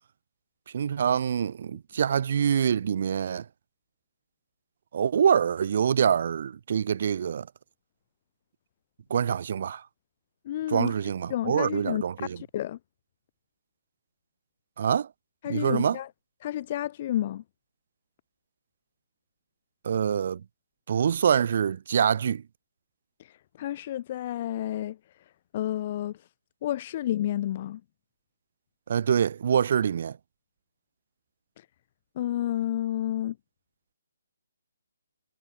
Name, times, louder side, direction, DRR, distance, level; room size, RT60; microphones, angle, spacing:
voice 1, 0.7-3.4 4.9-7.5 9.1-9.8 10.7-12.4 14.8-15.1 15.5-16.0 19.8-20.4 20.9-22.4 28.9-30.2, right 8 dB, 50° right, 0.8 m, -25 dB
voice 2, 10.5-11.0 11.3-12.0 12.4-12.8 15.4-16.1 16.4-17.4 23.2-25.0 25.5-26.2 26.6-27.8 31.6-31.7 32.2-33.4, left 12 dB, 35° left, 0.7 m, -30 dB
hypercardioid pair, 155°, 0 cm